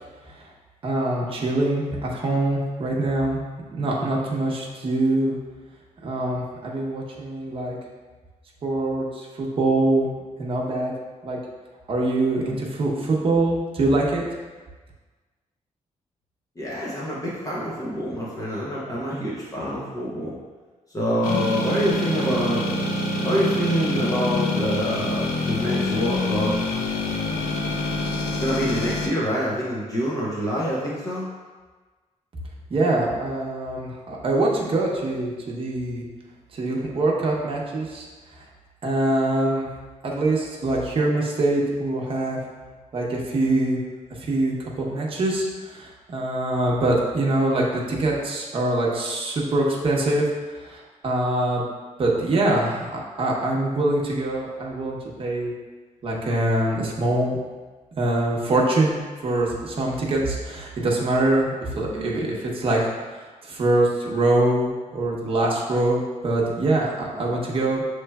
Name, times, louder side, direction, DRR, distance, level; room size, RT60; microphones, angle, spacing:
voice 1, 0.8-3.4 3.7-5.4 6.0-7.8 8.6-10.1 10.4-10.9 11.2-11.4 11.9-14.2 32.7-36.0 36.5-38.1 38.8-39.7 40.0-42.4 42.9-43.8 44.2-50.2 50.5-51.7 52.0-52.9 53.2-55.5 56.0-57.4 58.0-67.8, right 2 dB, 45° right, -3 dB, 0.8 m, -24 dB
voice 2, 16.6-20.3 20.9-22.8 23.2-26.6 28.4-31.3, equal, 25° left, -6 dB, 0.7 m, -26 dB
sound 1, 21.2-29.1, left 2 dB, 85° left, 0.6 m, -26 dB
6.5 x 3.1 x 2.3 m, 1.3 s
wide cardioid pair, 140°, 13 cm